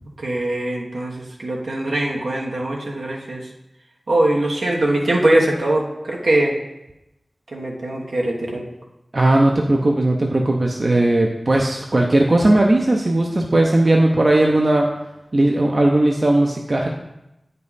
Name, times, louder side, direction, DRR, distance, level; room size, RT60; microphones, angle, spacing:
voice 1, 0.2-3.5 4.1-6.5 7.5-8.6, right 1 dB, 85° right, -1 dB, 1.2 m, -21 dB
voice 2, 9.1-14.9 15.3-16.9, right 1 dB, 50° right, 1 dB, 0.7 m, -17 dB
8.6 x 5.4 x 4.1 m, 0.92 s
wide cardioid pair, 60°, 0 cm